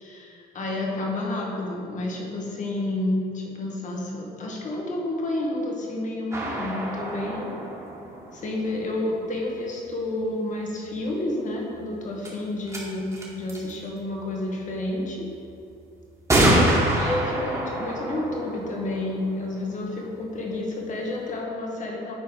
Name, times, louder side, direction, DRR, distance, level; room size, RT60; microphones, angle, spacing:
voice 1, 0.1-7.6 8.3-15.3 16.9-22.1, left 1 dB, 45° left, -2 dB, 1.8 m, -30 dB
sound 1, 6.3-9.0 11.6-11.7 12.2-12.3 12.7-12.8 13.1-13.7 15.0-15.1 16.3-19.8, right 1 dB, 15° right, 2.0 m, -26 dB
9.9 x 4.3 x 5.5 m, 2.6 s
cardioid pair, 105°, 18 cm